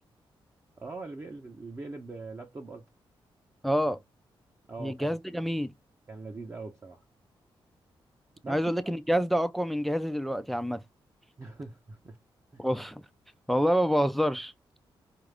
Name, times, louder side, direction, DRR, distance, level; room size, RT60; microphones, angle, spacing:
voice 1, 0.8-2.8 4.7-5.2 6.1-7.0 8.4-8.9 11.4-12.2 12.5-12.6, right 3 dB, 30° right, 0.7 m, -42 dB
voice 2, 3.6-4.0 4.8-5.7 8.5-10.8 12.6-13.0 13.5-14.5, equal, ahead, 0.4 m, -27 dB
4.7 x 2.5 x 3.3 m
cardioid pair, 105°, 9 cm